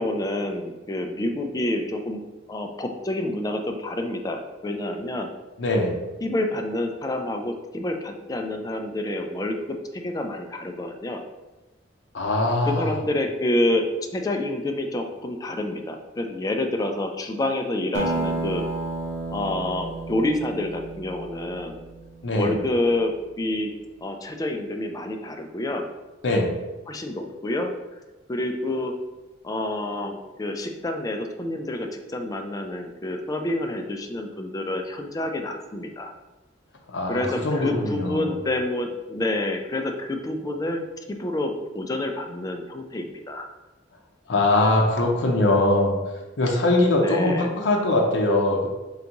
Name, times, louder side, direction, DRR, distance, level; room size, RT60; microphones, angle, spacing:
voice 1, 0.0-2.2 2.5-5.3 6.2-11.2 12.7-13.8 14.1-18.6 19.3-21.8 22.3-23.7 24.0-25.9 26.9-27.7 28.3-28.9 29.4-36.1 37.1-40.8 41.1-43.5 47.0-47.5, left 1 dB, 20° left, 4 dB, 0.3 m, -28 dB
voice 2, 5.6-5.9 12.1-12.9 22.2-22.5 26.2-26.5 36.9-38.3 44.3-46.0 46.4-48.7, left 2 dB, 75° left, 0 dB, 0.6 m, -22 dB
Acoustic guitar, 17.9-22.8, right 2 dB, 70° right, 0.7 m, -32 dB
3.9 x 3.4 x 2.9 m, 1.1 s
head